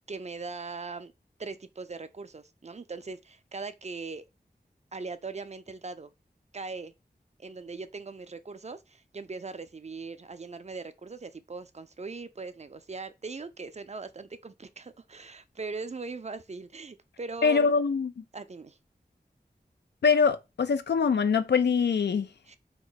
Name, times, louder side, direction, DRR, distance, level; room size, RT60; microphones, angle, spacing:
voice 1, 0.1-1.1 1.4-4.2 4.9-6.1 6.5-6.9 7.4-17.7 18.3-18.8 22.5-22.6, right 4 dB, 40° right, 0.4 m, -40 dB
voice 2, 17.4-18.2 20.0-22.3, left 5 dB, 85° left, 0.4 m, -24 dB
2.9 x 2.2 x 3.9 m
wide cardioid pair, 40°, 17 cm